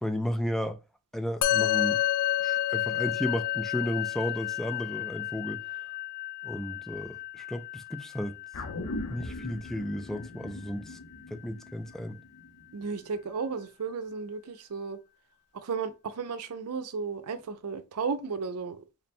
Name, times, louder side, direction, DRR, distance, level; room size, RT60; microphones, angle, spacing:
voice 1, 0.0-0.8 1.1-2.0 2.4-5.6 6.4-8.3 9.1-11.0 11.3-12.2, equal, ahead, 0.3 m, -33 dB
Musical instrument, 1.4-11.0, left 13 dB, 90° left, 0.4 m, -31 dB
sound 1, 8.5-13.1 13.5-13.6, left 2 dB, 65° left, 0.8 m, -40 dB
voice 2, 12.7-15.0 15.5-18.8, right 5 dB, 85° right, 0.5 m, -34 dB
3.7 x 2.2 x 4.2 m
head